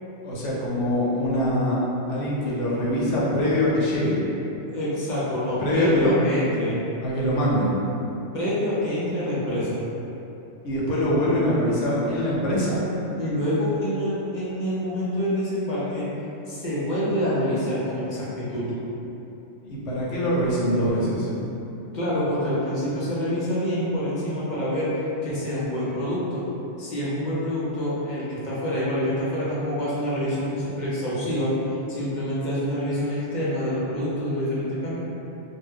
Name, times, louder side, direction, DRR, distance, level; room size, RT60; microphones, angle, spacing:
voice 1, 0.2-1.8 2.1-4.2 5.6-6.1 7.0-7.8 10.6-12.8 19.6-21.3, equal, 85° left, -6 dB, 1.0 m, -23 dB
voice 2, 4.7-6.8 8.3-9.7 13.2-16.0 16.5-18.7 21.9-26.4 26.8-31.5 31.9-35.0, equal, 50° left, -8 dB, 0.6 m, -26 dB
2.6 x 2.1 x 3.4 m, 2.9 s
omnidirectional pair, 1.2 m